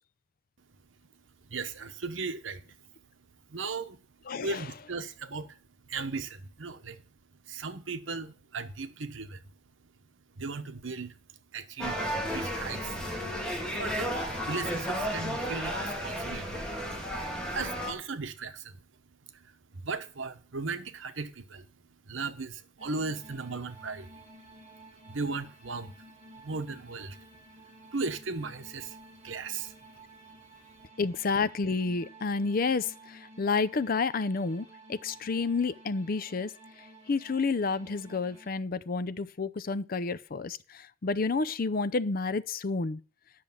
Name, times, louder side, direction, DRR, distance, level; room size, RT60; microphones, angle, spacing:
voice 1, 1.4-2.9 3.5-4.0 4.4-5.6 5.8-7.0 7.3-9.4 10.3-11.2 11.5-12.0 12.3-13.1 13.7-16.6 17.3-18.9 19.3-21.7 22.0-24.2 24.7-24.8 25.0-27.3 27.9-30.0, right 4 dB, 80° right, 1.0 m, -37 dB
voice 2, 4.3-4.7 31.0-36.5 36.8-43.0, left 4 dB, 50° left, 0.5 m, -30 dB
sound 1, 11.8-17.9, equal, 5° left, 2.6 m, -33 dB
sound 2, 22.8-38.5, right 2 dB, 30° right, 2.7 m, -53 dB
10.0 x 6.5 x 7.2 m
head